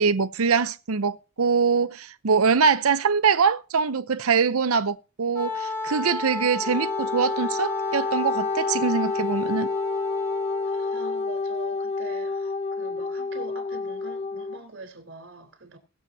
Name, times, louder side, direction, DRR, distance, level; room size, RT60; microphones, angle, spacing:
voice 1, 0.0-9.7, right 5 dB, 85° right, 0.7 m, -23 dB
Wind instrument woodwind instrument, 5.3-11.3, left 3 dB, 10° left, 3.5 m, -33 dB
Wind instrument woodwind instrument 2, 6.5-14.6, left 4 dB, 30° left, 0.5 m, -29 dB
voice 2, 10.6-15.8, right 2 dB, 65° right, 3.9 m, -43 dB
21.5 x 7.3 x 2.8 m
head